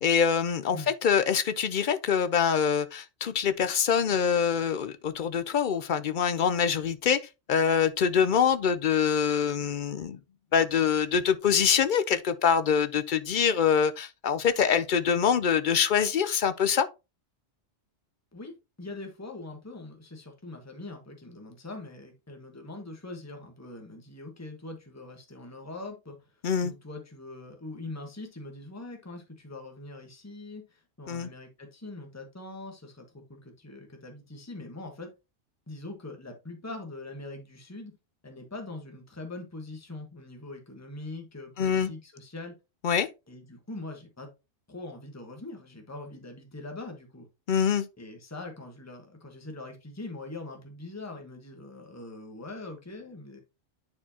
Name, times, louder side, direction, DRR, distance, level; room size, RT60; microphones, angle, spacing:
voice 1, 0.0-7.2 7.5-10.2 10.5-16.9 26.4-26.7 31.1-31.3 41.6-41.9 42.8-43.1 47.5-47.8, left 7 dB, 55° left, 0.6 m, -25 dB
voice 2, 18.8-26.3 26.6-35.1 35.7-37.9 38.2-42.5 43.3-44.3 44.7-47.3 48.0-53.4, left 2 dB, 15° left, 1.3 m, -42 dB
9.6 x 4.4 x 2.8 m
omnidirectional pair, 1.2 m